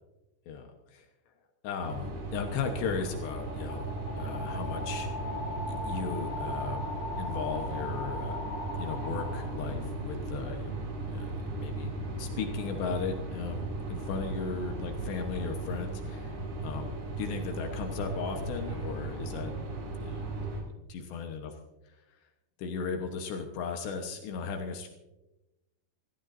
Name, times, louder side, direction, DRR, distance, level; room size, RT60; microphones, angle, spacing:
voice 1, 0.5-1.1 1.6-5.1 5.8-8.4 8.8-10.7 11.1-11.9 12.2-19.5 20.0-20.6 20.9-21.5 21.9-22.0 22.6-24.9, left 5 dB, 75° left, 4 dB, 3.3 m, -36 dB
sound 1, 1.8-20.6, right 2 dB, 60° right, 4.6 m, -36 dB
sound 2, 2.2-10.0, left 2 dB, 40° left, 5.6 m, -39 dB
26.0 x 16.5 x 2.7 m, 1.0 s
omnidirectional pair, 5.1 m